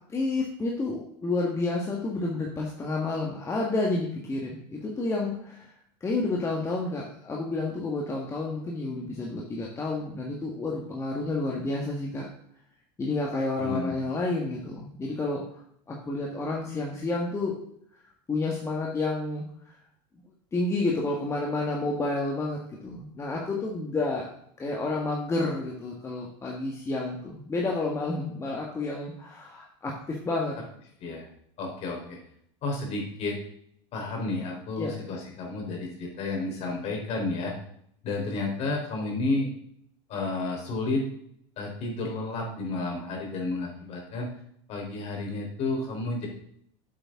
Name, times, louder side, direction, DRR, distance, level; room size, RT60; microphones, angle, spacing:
voice 1, 0.1-5.7 6.0-12.3 13.0-15.6 15.9-17.5 18.3-19.8 20.5-24.3 24.6-30.6 34.8-34.9, left 2 dB, 20° left, -2 dB, 1.6 m, -30 dB
voice 2, 13.6-14.0 31.0-31.3 31.6-32.2 32.6-33.4 33.9-37.5 38.0-39.5 40.1-41.0 41.6-44.3 44.7-46.3, left 2 dB, 45° left, 0 dB, 3.8 m, -31 dB
8.9 x 7.8 x 3.7 m, 0.68 s
supercardioid pair, 125°, 15 cm